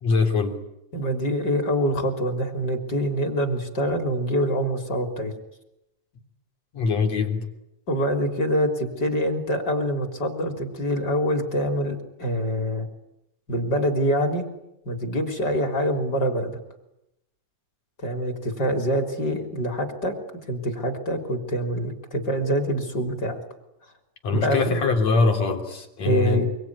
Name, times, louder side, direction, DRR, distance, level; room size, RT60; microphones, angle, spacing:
voice 1, 0.0-0.6 6.7-7.5 24.2-26.5, left 4 dB, 60° left, 4 dB, 4.4 m, -23 dB
voice 2, 0.9-5.3 7.9-12.9 13.5-14.4 14.9-16.6 18.0-20.2 20.5-23.4 24.3-24.8 26.0-26.5, equal, 35° left, 5 dB, 4.0 m, -25 dB
25.0 x 24.5 x 9.7 m, 0.87 s
omnidirectional pair, 3.5 m